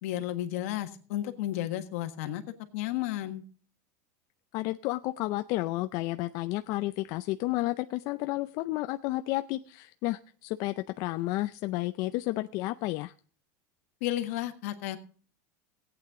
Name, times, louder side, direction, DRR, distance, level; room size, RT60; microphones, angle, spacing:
voice 1, 0.0-2.4 2.7-3.4 14.0-15.0, left 13 dB, 70° left, 8 dB, 1.5 m, -32 dB
voice 2, 4.5-13.1, left 18 dB, 50° left, 10 dB, 0.4 m, -31 dB
17.0 x 8.9 x 3.6 m, 0.41 s
supercardioid pair, 155°, 8 cm